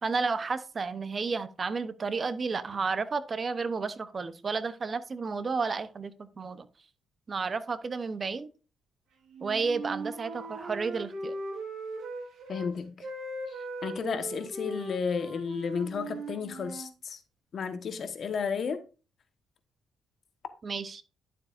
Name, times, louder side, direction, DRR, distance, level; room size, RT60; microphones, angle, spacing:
voice 1, 0.0-6.7 7.3-8.5 9.4-11.3 20.6-21.0, right 4 dB, 35° right, 0.7 m, -32 dB
Wind instrument woodwind instrument, 9.3-12.7 13.0-16.9, right 2 dB, 70° right, 3.9 m, -39 dB
voice 2, 12.5-13.1 13.5-13.6 13.8-17.2 17.5-18.8, left 6 dB, 55° left, 1.2 m, -33 dB
11.5 x 7.3 x 2.5 m
cardioid pair, 90°, 0 cm